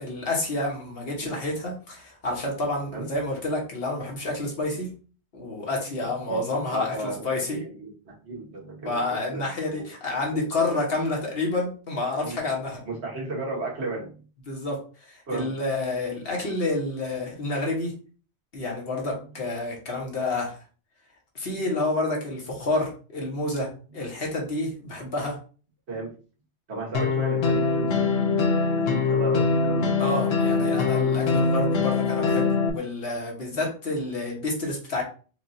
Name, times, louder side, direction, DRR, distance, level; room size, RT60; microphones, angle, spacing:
voice 1, 0.0-4.9 5.3-7.6 8.8-12.8 14.5-17.9 18.5-20.6 21.3-23.7 23.9-25.4 30.0-35.0, left 2 dB, 65° left, -1 dB, 1.4 m, -29 dB
voice 2, 6.3-7.2 7.5-9.0 9.3-9.8 10.3-10.5 12.2-12.4 12.9-14.3 15.3-15.6 25.9-26.1 26.7-30.0 33.5-33.6, right 2 dB, 80° right, -3 dB, 1.6 m, -35 dB
sound 1, 26.9-32.7, left 4 dB, 85° left, 0.9 m, -23 dB
4.6 x 2.4 x 2.7 m, 0.38 s
omnidirectional pair, 1.1 m